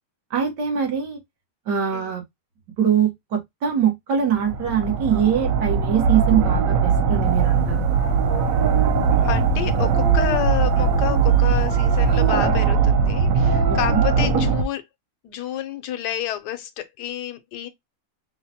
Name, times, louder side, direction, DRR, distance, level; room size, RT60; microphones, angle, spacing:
voice 1, 0.3-1.2 1.7-2.2 2.8-7.8 13.7-14.0, right 8 dB, 85° right, 1.8 m, -23 dB
sound 1, 4.3-14.6, right 6 dB, 65° right, 1.0 m, -20 dB
sound 2, 7.2-12.3, left 3 dB, 15° left, 0.3 m, -34 dB
voice 2, 9.2-14.9 15.2-17.7, left 11 dB, 85° left, 1.2 m, -29 dB
5.5 x 2.2 x 2.7 m
omnidirectional pair, 1.8 m